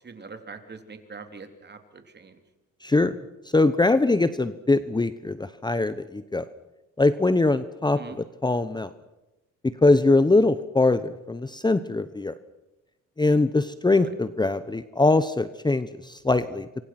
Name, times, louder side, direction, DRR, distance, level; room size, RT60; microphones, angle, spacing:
voice 1, 0.0-2.4 8.0-8.2 14.0-14.1, right 4 dB, 35° right, 7 dB, 3.3 m, -42 dB
voice 2, 2.8-3.1 3.5-6.4 7.0-8.0 8.4-8.9 9.6-12.3 13.2-16.7, left 2 dB, 15° left, 13 dB, 0.9 m, -22 dB
28.0 x 24.5 x 6.0 m, 0.98 s
cardioid pair, 90°, 30 cm